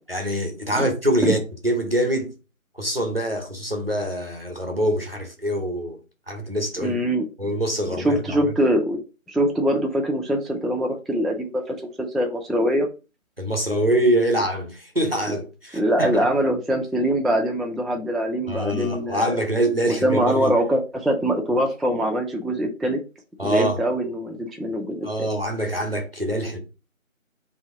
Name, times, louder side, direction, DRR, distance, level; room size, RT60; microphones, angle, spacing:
voice 1, 0.1-1.4 1.6-2.3 2.7-6.0 6.3-6.9 7.4-8.4 13.4-16.2 18.5-20.5 23.4-23.8 25.0-26.6, right 1 dB, 45° right, 0.8 m, -24 dB
voice 2, 6.8-7.3 7.9-9.0 9.3-12.9 15.3-15.4 15.7-19.4 20.0-23.0 23.4-25.1, equal, ahead, 0.4 m, -23 dB
2.8 x 2.7 x 4.3 m
figure-of-eight pair, 175°, 41 cm